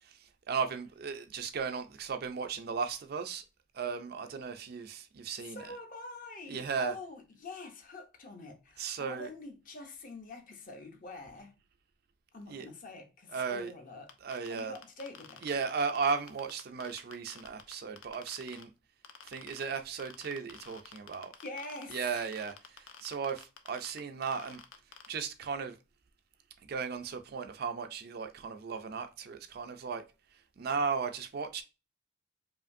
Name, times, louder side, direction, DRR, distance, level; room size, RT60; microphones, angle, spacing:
voice 1, 0.0-3.4 3.7-5.8 6.5-6.9 8.8-9.3 12.5-12.7 13.3-13.7 14.2-14.8 15.4-18.7 19.2-21.3 21.9-24.6 25.1-25.8 26.7-30.0 30.6-31.6, right 5 dB, 50° right, 0.4 m, -36 dB
voice 2, 5.4-11.5 12.3-14.1 14.5-15.4 21.4-22.0, left 2 dB, 40° left, 0.7 m, -45 dB
sound 1, 14.1-18.6 19.0-19.6 20.0-25.1, left 8 dB, 85° left, 0.6 m, -49 dB
4.9 x 2.5 x 2.6 m
head